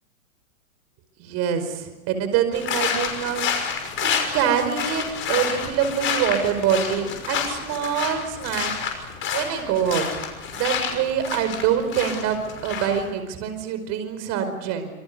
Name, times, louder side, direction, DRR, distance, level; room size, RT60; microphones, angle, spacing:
voice 1, 1.2-3.5 4.0-8.7 9.3-10.0 10.5-14.9, right 8 dB, 40° right, 9 dB, 5.1 m, -25 dB
sound 1, 2.5-13.1, left 7 dB, 30° left, 6.0 m, -29 dB
27.0 x 25.5 x 6.9 m, 1.1 s
hypercardioid pair, 130°, 42 cm